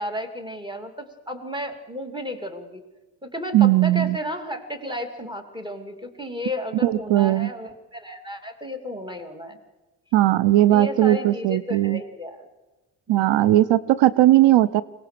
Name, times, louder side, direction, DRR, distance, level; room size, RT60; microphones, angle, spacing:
voice 1, 0.0-2.8 3.2-9.6 10.7-12.5 13.1-13.6, left 1 dB, 10° right, 6 dB, 2.7 m, -33 dB
voice 2, 3.5-4.2 6.8-7.5 10.1-12.0 13.1-14.8, right 14 dB, 75° right, 18 dB, 0.7 m, -18 dB
22.5 x 18.5 x 6.7 m, 1.1 s
cardioid pair, 80°, 45 cm